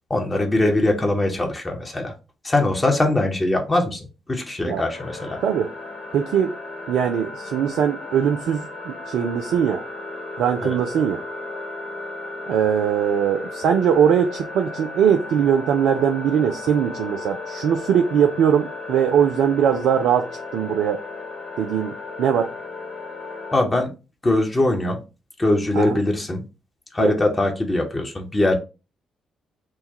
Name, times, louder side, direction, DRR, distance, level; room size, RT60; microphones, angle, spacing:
voice 1, 0.1-2.1 2.4-4.0 4.3-5.4 10.6-10.8 23.5-23.9 24.2-25.0 25.4-26.4 26.9-28.6, left 2 dB, 25° left, 1.1 m, -21 dB
sound 1, 4.9-23.6, left 3 dB, 55° left, 0.8 m, -35 dB
voice 2, 6.1-6.6 6.9-9.8 10.4-11.2 12.5-21.0 21.6-22.5 25.7-26.0 27.0-27.1, right 8 dB, 65° right, 0.3 m, -21 dB
6.0 x 2.2 x 2.8 m
figure-of-eight pair, 40°, 0 cm